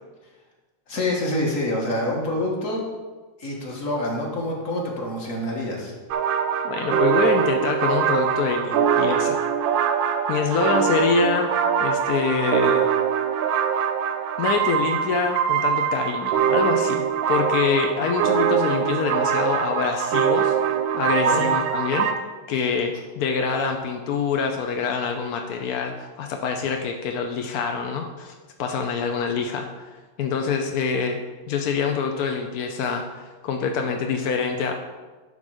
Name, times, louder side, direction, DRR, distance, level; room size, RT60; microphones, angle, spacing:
voice 1, 0.9-2.8 3.4-5.9 21.2-21.4, left 1 dB, 40° left, -1 dB, 1.8 m, -26 dB
sound 1, 6.1-22.1, right 8 dB, 70° right, 1.2 m, -23 dB
voice 2, 6.6-9.4 10.3-11.5 11.8-12.9 14.4-20.6 20.9-22.1 22.5-29.9 30.2-31.2 31.5-34.7, left 5 dB, 70° left, 3 dB, 0.8 m, -25 dB
11.0 x 3.9 x 6.3 m, 1.3 s
omnidirectional pair, 2.3 m